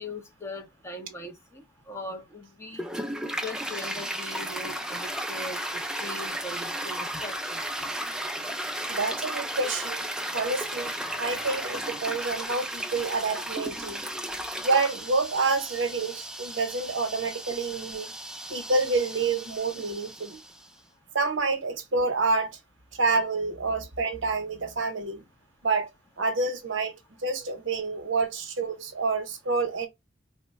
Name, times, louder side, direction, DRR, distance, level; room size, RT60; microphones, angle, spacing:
voice 1, 0.0-2.8 3.4-5.6 6.0-7.6, left 1 dB, 15° left, 0.8 m, -40 dB
Toilet flush, 2.7-20.7, right 1 dB, 5° right, 0.3 m, -34 dB
voice 2, 8.9-10.1 10.3-14.0 14.6-18.1 18.5-20.4 21.1-22.6 23.0-25.2 25.6-25.9 26.2-26.9 27.2-29.9, right 3 dB, 70° right, 0.8 m, -28 dB
3.0 x 2.2 x 4.2 m
head